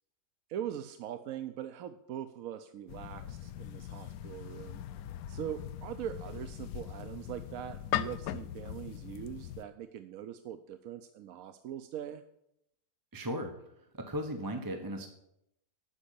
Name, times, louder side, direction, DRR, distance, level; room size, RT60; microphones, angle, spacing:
voice 1, 0.5-4.8 5.3-12.2, right 10 dB, 70° right, 9 dB, 0.9 m, -42 dB
sound 1, 2.9-9.6, left 11 dB, 70° left, 1.0 m, -40 dB
voice 2, 13.1-13.5 13.9-15.1, equal, 15° right, 4 dB, 0.8 m, -36 dB
12.5 x 5.3 x 8.5 m, 0.80 s
omnidirectional pair, 1.7 m